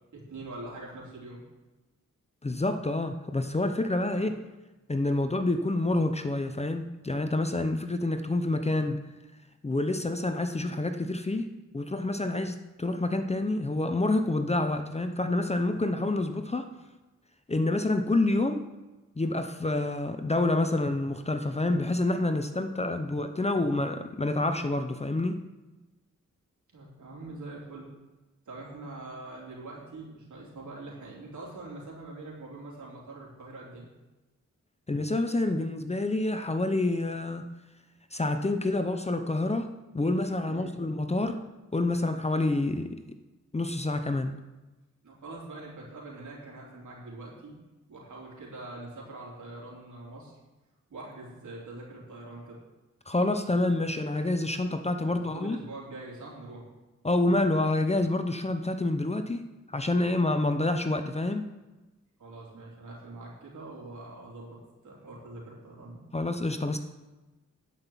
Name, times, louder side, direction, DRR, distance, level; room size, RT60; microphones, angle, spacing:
voice 1, 0.1-1.4 4.1-4.3 26.7-27.9 28.5-33.8 40.5-40.7 45.0-47.6 47.9-50.3 50.9-52.6 55.0-56.6 62.2-66.0, right 2 dB, 70° right, -3 dB, 3.7 m, -43 dB
voice 2, 2.4-4.4 4.9-9.0 9.6-16.7 17.5-18.6 19.2-25.4 34.9-37.5 38.1-41.4 41.7-43.0 43.5-44.3 53.1-55.6 57.0-59.5 59.7-61.5 66.1-66.8, left 2 dB, 20° left, 8 dB, 0.7 m, -28 dB
10.5 x 5.9 x 7.4 m, 1.1 s
cardioid pair, 85°, 31 cm